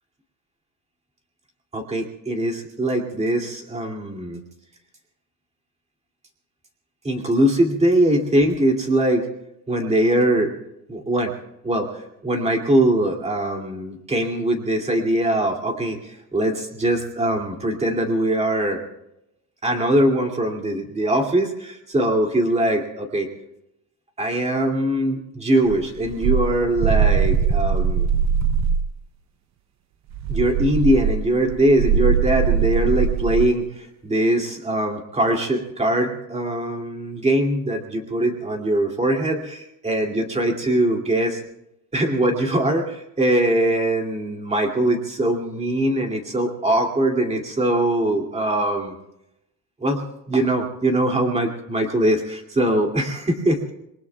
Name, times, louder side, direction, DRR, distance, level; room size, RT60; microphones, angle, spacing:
voice 1, 1.7-4.4 7.0-9.3 9.7-10.5 10.9-11.3 11.6-18.8 19.6-23.3 24.2-28.1 30.3-41.4 41.9-48.9 49.8-53.7, right 1 dB, 15° right, 2 dB, 2.5 m, -22 dB
sound 1, 25.7-28.9 30.1-33.6, right 7 dB, 45° right, 0.6 m, -21 dB
27.5 x 22.0 x 2.3 m, 0.84 s
cardioid pair, 160°, 39 cm